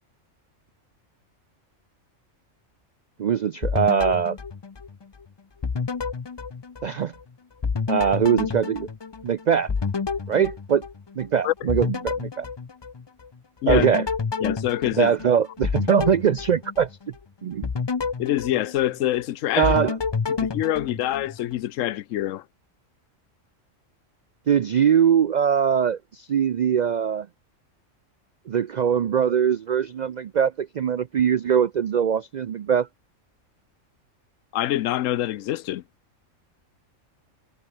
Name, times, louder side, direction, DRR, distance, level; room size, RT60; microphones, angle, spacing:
voice 1, 3.2-4.4 6.8-7.1 7.9-8.9 9.2-9.7 10.3-10.8 11.2-12.5 13.6-14.0 15.0-16.9 17.4-17.7 19.6-19.9 24.5-27.3 28.5-32.9, right 8 dB, 80° right, 0.4 m, -22 dB
sound 1, 3.6-5.2 5.6-7.2 7.6-11.3 11.7-13.3 13.7-17.2 17.6-19.2 19.6-21.6, left 5 dB, 40° left, 0.4 m, -29 dB
voice 2, 14.4-15.1 18.2-19.8 20.3-22.4 34.5-35.8, left 13 dB, 75° left, 1.0 m, -25 dB
omnidirectional pair, 1.4 m